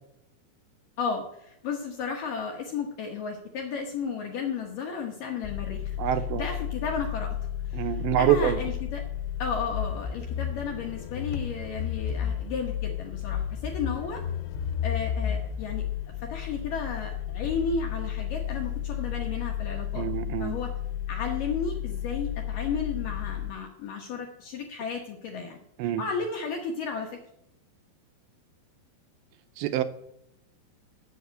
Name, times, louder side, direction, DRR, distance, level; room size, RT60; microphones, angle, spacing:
voice 1, 1.0-7.4 7.7-9.0 9.4-14.2 14.8-15.8 16.2-20.1 20.4-20.7 21.1-25.6 26.0-27.2, left 5 dB, 70° left, 1 dB, 2.1 m, -33 dB
sound 1, 5.4-23.5, left 10 dB, 90° left, 3.1 m, -32 dB
voice 2, 6.0-6.5 7.7-8.6 20.0-20.6 25.8-26.0 29.6-29.8, right 12 dB, 80° right, 9 dB, 2.8 m, -25 dB
8.1 x 7.2 x 8.0 m, 0.78 s
omnidirectional pair, 5.2 m